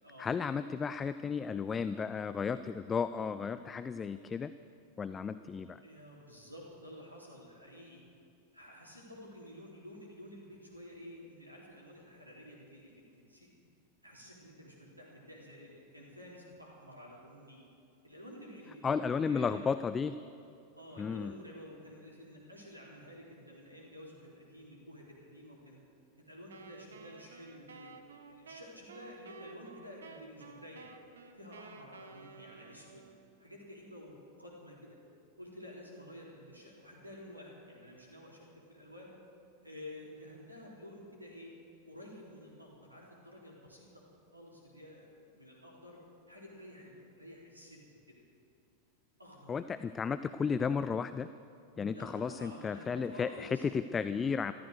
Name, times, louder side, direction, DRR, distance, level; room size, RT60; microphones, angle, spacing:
voice 1, 0.2-4.5 5.0-5.8 18.8-20.2 21.0-21.3 49.5-51.3 51.8-54.5, left 6 dB, 20° left, 13 dB, 0.4 m, -33 dB
voice 2, 5.8-8.0 8.5-13.5 14.0-17.6 18.0-19.7 20.8-25.8 26.2-27.9 28.2-30.9 31.3-33.1 33.4-35.0 35.4-39.1 39.6-41.5 41.9-43.9 44.3-46.0 46.3-48.2 49.2-49.6 51.9-53.6, left 1 dB, 85° right, -3 dB, 3.6 m, -51 dB
Wind instrument woodwind instrument, 26.5-33.3, right 4 dB, 65° right, 1.1 m, -53 dB
14.5 x 14.0 x 6.6 m, 2.6 s
figure-of-eight pair, 90°, 0 cm